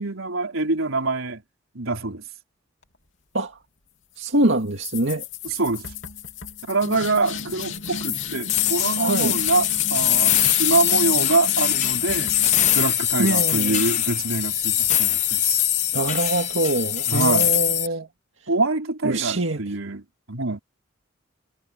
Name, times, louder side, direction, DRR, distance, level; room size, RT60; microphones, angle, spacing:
voice 1, 0.0-1.4 1.7-2.2 5.4-5.9 6.6-12.3 12.7-15.6 17.1-17.5 18.5-20.6, right 3 dB, 90° right, 4.2 m, -25 dB
voice 2, 4.2-5.2 9.0-9.4 13.2-13.8 15.9-18.1 19.0-19.6, right 2 dB, 65° right, 2.2 m, -24 dB
sound 1, 4.8-15.4, left 9 dB, 70° left, 3.1 m, -31 dB
sound 2, 8.0-17.9, left 11 dB, 35° left, 1.0 m, -22 dB
head